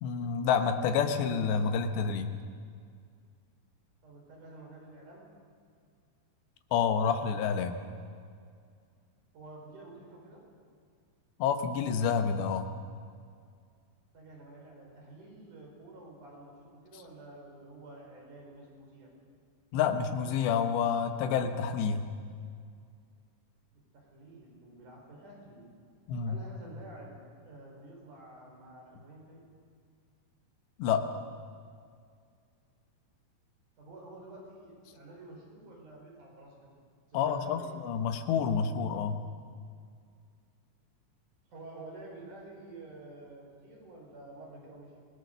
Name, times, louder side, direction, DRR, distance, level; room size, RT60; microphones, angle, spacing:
voice 1, 0.0-2.3 6.7-7.8 11.4-12.7 19.7-22.1 26.1-26.4 30.8-31.2 37.1-39.2, left 6 dB, 80° left, 7 dB, 3.4 m, -29 dB
voice 2, 4.0-5.3 9.3-10.4 14.1-19.1 23.9-25.7 26.3-29.4 33.8-36.5 37.1-37.7 41.5-45.0, right 2 dB, 45° right, -2 dB, 6.3 m, -49 dB
25.0 x 19.5 x 6.8 m, 2.2 s
omnidirectional pair, 5.1 m